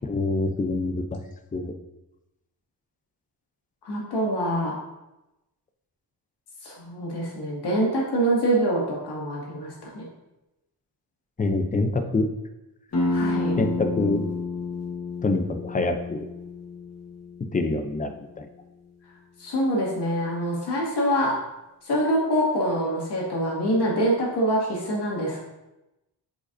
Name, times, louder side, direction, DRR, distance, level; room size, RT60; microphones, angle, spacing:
voice 1, 0.0-1.2 1.5-1.7 11.4-12.3 13.6-14.2 15.2-16.3 17.5-18.5, left 3 dB, 20° left, 6 dB, 0.5 m, -25 dB
voice 2, 3.8-4.7 6.6-10.0 13.1-13.5 19.4-21.3 21.8-25.4, right 1 dB, 80° left, -4 dB, 2.2 m, -25 dB
sound 1, 12.9-18.3, left 3 dB, 40° left, 1.3 m, -30 dB
8.4 x 5.1 x 2.6 m, 0.96 s
wide cardioid pair, 160°, 39 cm